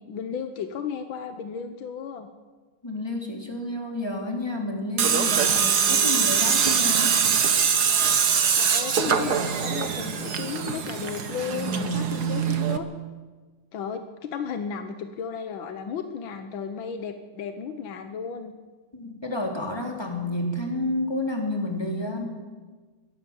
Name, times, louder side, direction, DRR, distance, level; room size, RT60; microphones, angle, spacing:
voice 1, 0.0-2.3 8.5-12.9 13.7-18.5, left 6 dB, 70° left, 8 dB, 1.2 m, -34 dB
voice 2, 2.8-7.2 18.9-22.2, left 1 dB, 10° left, 1 dB, 3.0 m, -30 dB
Tools, 5.0-12.8, right 7 dB, 60° right, 1.0 m, -23 dB
22.0 x 18.0 x 7.3 m, 1.4 s
omnidirectional pair, 3.6 m